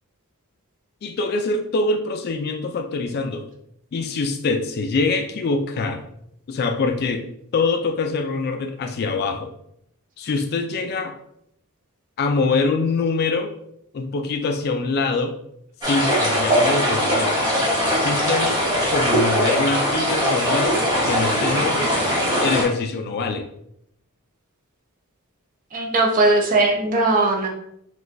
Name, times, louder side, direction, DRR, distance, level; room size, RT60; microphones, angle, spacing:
voice 1, 1.0-3.5 3.9-6.0 6.5-7.2 7.5-9.5 10.2-11.1 12.2-13.5 13.9-15.4 15.8-17.4 17.9-21.9 22.4-23.5, left 3 dB, 45° left, 6 dB, 0.3 m, -24 dB
sound 1, 15.8-22.6, equal, 20° right, 1.0 m, -21 dB
voice 2, 25.7-27.5, right 2 dB, 35° right, 1 dB, 0.5 m, -19 dB
4.0 x 2.3 x 2.5 m, 0.72 s
head